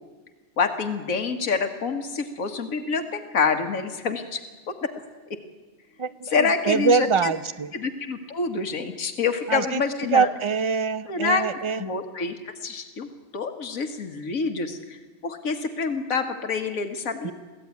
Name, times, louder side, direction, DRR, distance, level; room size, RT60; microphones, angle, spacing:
voice 1, 0.6-4.4 4.7-4.9 6.3-7.3 7.7-10.3 11.1-11.4 11.8-13.1 13.3-17.3, left 5 dB, 90° left, 6 dB, 1.9 m, -27 dB
voice 2, 6.0-7.7 9.5-9.8 10.1-11.8 17.2-17.3, right 5 dB, 35° right, 13 dB, 0.5 m, -24 dB
23.0 x 15.5 x 9.5 m, 1.3 s
omnidirectional pair, 1.4 m